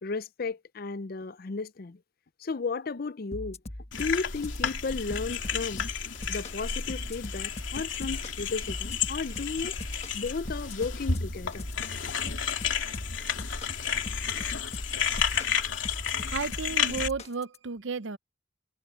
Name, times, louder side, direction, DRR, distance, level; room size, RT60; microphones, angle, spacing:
voice 1, 0.0-2.0 2.4-3.6 3.9-5.9 6.3-9.8 10.1-11.7, left 4 dB, 50° left, 0.5 m, -34 dB
sound 1, 3.3-17.6, left 1 dB, 35° left, 1.2 m, -40 dB
sound 2, 3.9-17.1, left 7 dB, 75° left, 2.7 m, -32 dB
voice 2, 16.3-18.2, right 5 dB, 75° right, 0.7 m, -33 dB
head